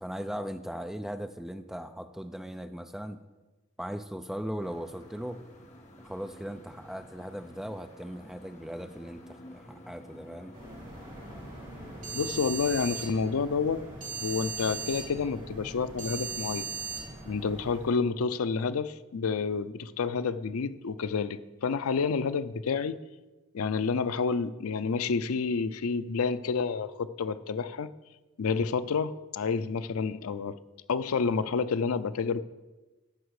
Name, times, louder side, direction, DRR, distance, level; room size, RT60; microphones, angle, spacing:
voice 1, 0.0-3.2 3.8-5.4 6.0-10.5, equal, ahead, 7 dB, 0.4 m, -38 dB
sound 1, 4.6-12.4, left 1 dB, 35° left, 1.3 m, -50 dB
sound 2, 10.5-17.9, right 5 dB, 35° right, 4.2 m, -39 dB
voice 2, 12.1-13.8 14.2-16.7 17.3-23.0 23.5-27.9 28.4-30.6 30.9-32.4, left 5 dB, 90° left, 14 dB, 0.5 m, -29 dB
14.5 x 5.9 x 4.8 m, 1.2 s
head